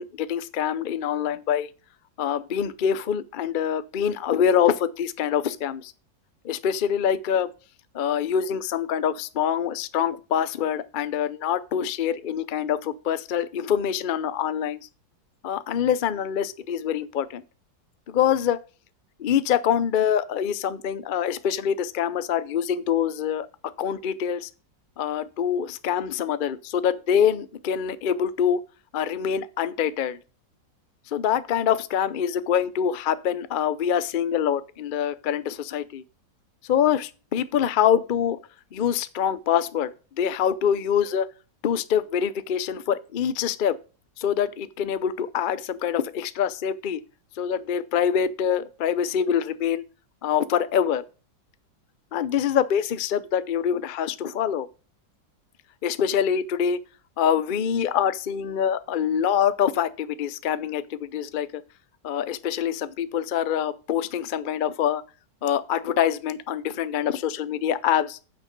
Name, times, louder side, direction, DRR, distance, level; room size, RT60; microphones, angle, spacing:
voice 1, 0.0-1.7 2.2-5.9 6.4-7.5 7.9-14.8 15.4-17.4 18.1-18.6 19.2-23.5 23.8-24.5 25.0-28.6 28.9-30.2 31.1-36.0 36.7-38.4 38.7-41.3 41.6-43.8 44.2-47.0 47.4-49.8 50.2-51.0 52.1-54.7 55.8-56.8 57.2-61.6 62.0-65.0 65.4-68.2, left 8 dB, 85° left, 0.4 m, -25 dB
9.1 x 6.2 x 6.5 m
omnidirectional pair, 1.9 m